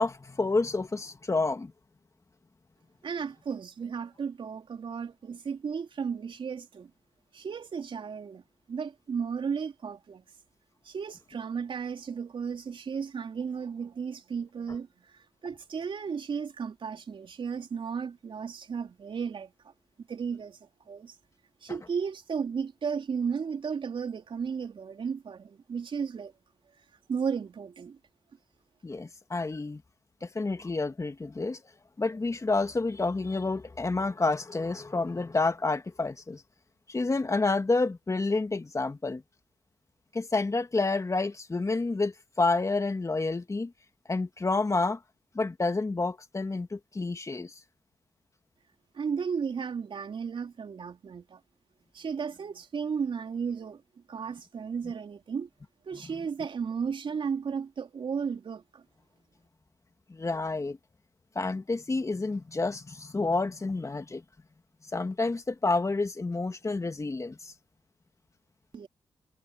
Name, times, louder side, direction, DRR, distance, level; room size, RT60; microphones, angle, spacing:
voice 1, 0.0-1.7 28.8-29.8 30.2-31.6 32.0-36.4 36.9-39.2 40.1-43.7 44.1-45.0 45.3-47.5 60.1-60.8 61.3-64.2 64.9-67.5, left 3 dB, 30° left, 2.5 m, -29 dB
voice 2, 3.0-6.9 7.3-8.4 8.7-10.2 10.8-14.9 15.1-19.7 20.0-21.2 21.6-26.3 27.1-28.0 48.9-51.4 51.9-53.8 54.1-55.5 55.8-58.8 68.7-68.9, right 6 dB, 60° right, 3.9 m, -34 dB
supercardioid pair, 50°, 10 cm